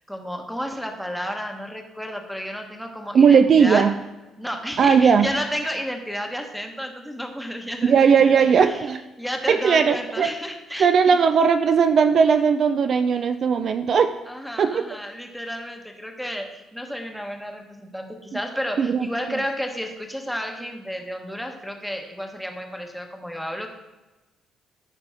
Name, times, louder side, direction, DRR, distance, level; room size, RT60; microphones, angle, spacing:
voice 1, 0.0-3.9 4.4-8.3 8.6-8.8 9.2-11.2 14.3-23.7, equal, ahead, 3 dB, 1.0 m, -32 dB
voice 2, 3.1-3.9 4.8-5.3 7.8-9.0 9.5-10.3 10.8-14.1 14.6-14.8 18.8-19.4, right 6 dB, 45° right, 9 dB, 0.4 m, -18 dB
14.0 x 5.2 x 3.4 m, 1.1 s
cardioid pair, 145°, 0 cm